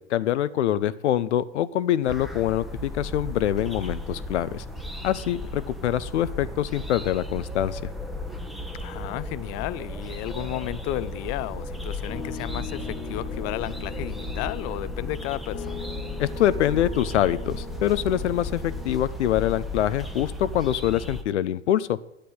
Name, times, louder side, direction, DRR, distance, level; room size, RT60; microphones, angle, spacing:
voice 1, 0.0-4.6 5.0-7.8 16.2-22.0, left 11 dB, 80° left, 0.9 m, -25 dB
sound 1, 2.1-21.2, left 1 dB, ahead, 1.2 m, -35 dB
voice 2, 8.8-15.8, left 16 dB, 45° left, 0.7 m, -33 dB
Piano, 12.1-19.0, left 6 dB, 25° left, 1.6 m, -39 dB
10.0 x 8.6 x 9.7 m
hypercardioid pair, 105°, 34 cm